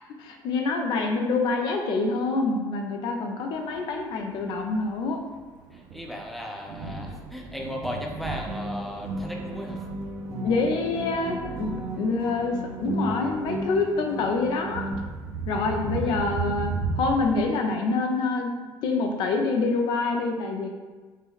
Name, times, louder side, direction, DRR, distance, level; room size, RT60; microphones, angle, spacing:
voice 1, 0.2-5.2 10.4-14.8 15.5-18.5 18.8-20.7, left 3 dB, 70° left, 3 dB, 0.7 m, -26 dB
Thunder, 3.7-17.4, right 4 dB, 80° right, 0.5 m, -36 dB
voice 2, 5.7-9.9 16.1-16.2, equal, ahead, 0 dB, 0.6 m, -36 dB
sound 1, 8.5-14.9, right 1 dB, 35° right, 0.7 m, -34 dB
5.3 x 2.0 x 4.1 m, 1.4 s
cardioid pair, 130°, 8 cm